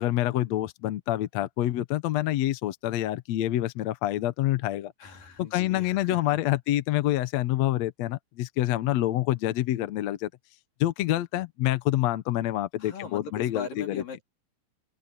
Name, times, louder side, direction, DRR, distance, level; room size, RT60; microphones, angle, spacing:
voice 1, 0.0-4.9 5.4-10.3 10.8-14.0, left 14 dB, 70° left, 1.8 m, -27 dB
voice 2, 5.0-6.6 12.8-14.2, left 6 dB, 85° left, 5.7 m, -40 dB
open air
omnidirectional pair, 3.8 m